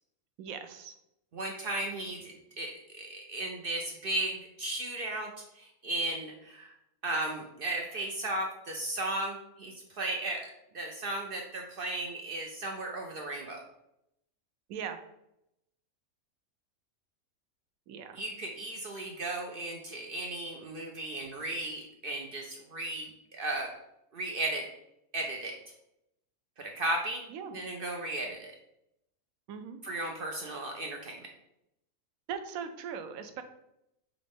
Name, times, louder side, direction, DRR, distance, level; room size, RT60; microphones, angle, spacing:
voice 1, 0.4-0.9 14.7-15.0 17.9-18.2 27.3-27.5 29.5-29.8 32.3-33.4, right 7 dB, 80° right, 8 dB, 1.0 m, -39 dB
voice 2, 1.3-6.7 7.0-13.6 18.1-23.7 24.1-24.7 25.1-25.6 26.6-27.2 27.5-28.5 29.8-31.3, right 2 dB, 55° right, 1 dB, 0.6 m, -35 dB
5.8 x 2.5 x 3.5 m, 0.82 s
omnidirectional pair, 1.5 m